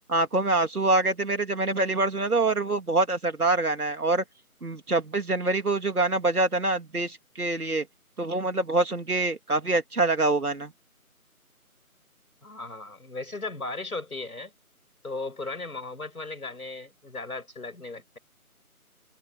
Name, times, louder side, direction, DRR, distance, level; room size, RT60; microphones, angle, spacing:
voice 1, 0.1-4.2 4.6-7.9 8.2-10.7, right 2 dB, 80° right, 3.4 m, -25 dB
voice 2, 12.4-14.5 15.0-18.2, left 3 dB, 75° left, 6.5 m, -36 dB
figure-of-eight pair, 180°, 44 cm